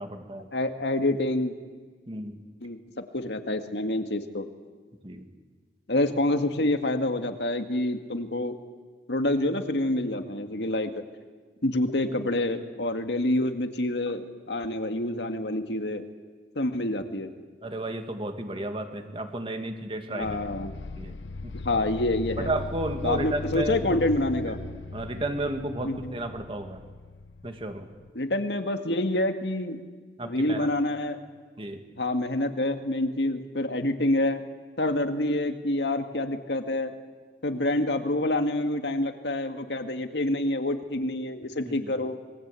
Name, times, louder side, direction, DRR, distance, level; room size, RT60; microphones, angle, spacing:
voice 1, 0.0-0.5 2.1-2.4 5.0-5.3 17.6-20.4 21.0-21.2 22.4-24.6 24.9-26.8 27.4-27.9 30.2-30.7 31.6-31.8 41.6-41.9, right 1 dB, 30° right, 6 dB, 2.2 m, -33 dB
voice 2, 0.5-1.5 2.6-2.8 3.1-4.5 5.9-8.6 9.1-10.9 11.6-16.0 16.6-17.3 20.1-20.7 21.6-22.5 23.0-24.6 25.8-26.1 28.2-29.8 30.2-31.2 32.0-34.4 34.8-36.9 37.4-42.2, left 1 dB, 70° left, 7 dB, 1.9 m, -27 dB
sound 1, 20.2-28.1, left 3 dB, 90° left, 0.7 m, -39 dB
26.5 x 23.0 x 8.4 m, 1.4 s
head